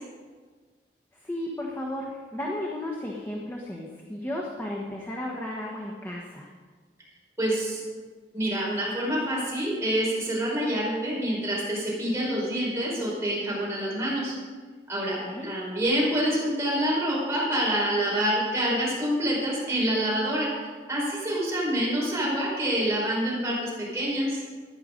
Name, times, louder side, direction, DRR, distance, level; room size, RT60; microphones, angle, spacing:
voice 1, 1.2-6.5 15.2-15.5, left 1 dB, 15° left, -2 dB, 1.3 m, -34 dB
voice 2, 7.4-7.8 8.3-14.4 14.9-20.5 20.9-24.4, equal, 15° right, -6 dB, 5.2 m, -27 dB
14.5 x 10.5 x 5.3 m, 1.5 s
head